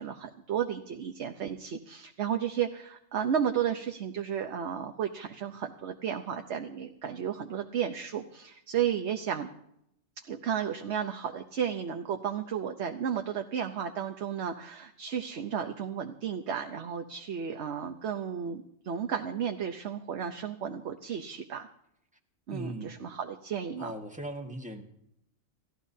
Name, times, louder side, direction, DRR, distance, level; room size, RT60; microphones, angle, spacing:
voice 1, 0.0-9.5 10.3-21.7 22.5-23.9, right 8 dB, 65° right, 5 dB, 1.1 m, -33 dB
voice 2, 22.5-22.9 23.8-24.8, right 1 dB, 5° right, 3 dB, 1.5 m, -39 dB
29.5 x 15.0 x 2.8 m, 0.77 s
omnidirectional pair, 1.3 m